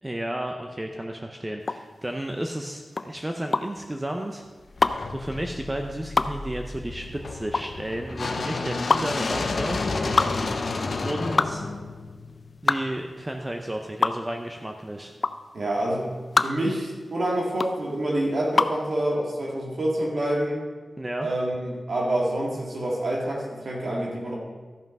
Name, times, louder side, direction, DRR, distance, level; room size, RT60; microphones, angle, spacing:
voice 1, 0.0-4.5 5.1-9.8 11.0-11.7 12.6-15.2 21.0-21.3, right 1 dB, 15° right, 3 dB, 0.5 m, -32 dB
sound 1, 1.6-18.9, left 3 dB, 40° left, 0.3 m, -27 dB
sound 2, 4.8-12.8, left 3 dB, 55° left, 0.8 m, -31 dB
voice 2, 15.5-16.1 16.4-20.6 21.2-24.4, right 1 dB, 55° right, -3 dB, 1.9 m, -27 dB
13.0 x 5.7 x 5.3 m, 1.4 s
wide cardioid pair, 155°, 0 cm